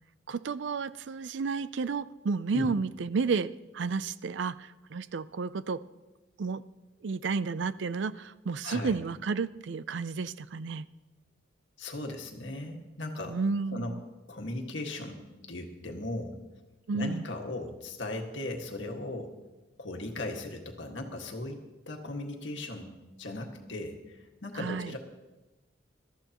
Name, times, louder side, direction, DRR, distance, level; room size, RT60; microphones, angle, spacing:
voice 1, 0.3-5.8 6.4-6.6 7.0-10.9 13.2-14.0 16.9-17.3 24.6-24.9, right 4 dB, 70° right, 16 dB, 0.4 m, -32 dB
voice 2, 8.6-8.9 11.8-13.4 13.7-14.0 14.3-15.2 15.5-16.4 16.9-19.3 19.8-22.9 23.2-25.0, left 2 dB, 70° left, 2 dB, 1.8 m, -37 dB
21.0 x 13.5 x 3.0 m, 1.1 s
head